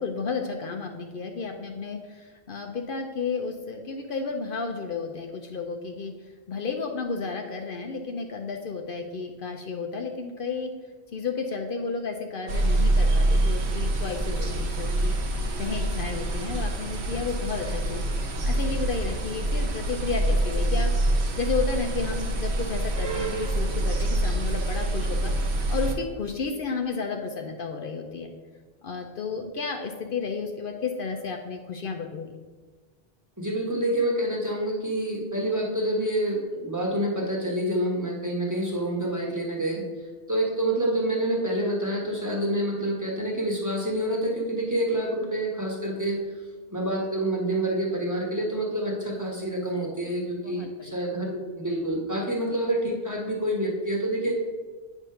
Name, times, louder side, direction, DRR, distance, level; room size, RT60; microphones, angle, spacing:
voice 1, 0.0-10.7 11.1-20.9 21.4-25.3 25.7-28.3 28.8-32.3 50.3-51.3, left 4 dB, 60° left, 4 dB, 0.8 m, -32 dB
sound 1, 12.5-26.0, right 1 dB, 90° right, 1.1 m, -26 dB
voice 2, 33.4-39.8 40.3-46.2 46.7-54.3, right 1 dB, 20° right, -1 dB, 1.2 m, -27 dB
8.4 x 3.6 x 5.6 m, 1.3 s
omnidirectional pair, 1.1 m